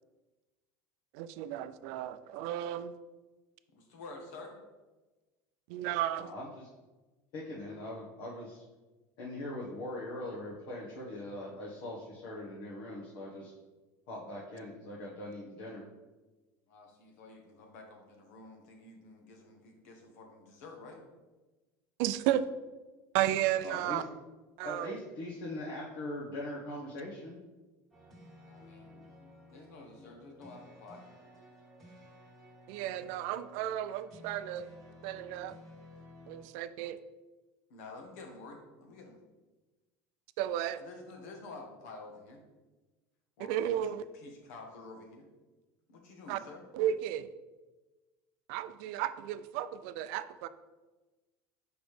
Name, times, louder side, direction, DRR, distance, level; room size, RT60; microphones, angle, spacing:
voice 1, 1.1-2.9 5.7-6.3 22.0-22.5 23.1-24.0 24.6-25.0 32.7-34.7 35.0-35.5 36.3-37.0 40.4-40.8 43.5-44.0 46.3-46.4 46.7-47.3 48.5-50.5, right 12 dB, 65° right, 13 dB, 0.4 m, -33 dB
voice 2, 3.7-4.5 16.7-21.0 28.4-29.0 29.5-31.0 37.7-39.2 40.8-42.4 43.4-43.7 44.1-45.3 45.9-46.6, left 3 dB, 85° left, 2 dB, 1.3 m, -50 dB
voice 3, 6.2-6.7 7.3-8.6 9.2-13.5 14.1-15.8 23.6-24.0 24.6-27.4, left 1 dB, 55° left, -5 dB, 1.2 m, -41 dB
sound 1, 27.9-36.5, left 1 dB, 5° left, 1.7 m, -55 dB
6.0 x 5.1 x 3.3 m, 1.2 s
cardioid pair, 160°, 8 cm